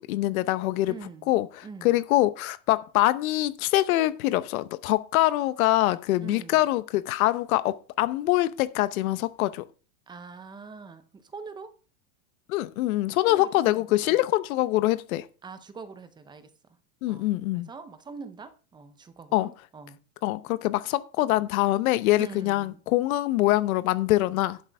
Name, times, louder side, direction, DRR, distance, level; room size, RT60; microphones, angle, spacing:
voice 1, 0.0-0.9 1.3-9.6 12.5-15.3 17.0-17.7 19.3-19.5 20.2-24.6, left 16 dB, 65° left, 0.9 m, -24 dB
voice 2, 0.8-1.3 1.6-2.0 6.2-6.6 10.1-11.8 13.2-14.2 15.4-16.5 17.1-20.0 22.2-22.8, right 5 dB, 10° right, 0.6 m, -44 dB
11.5 x 8.1 x 3.5 m
supercardioid pair, 155°, 45 cm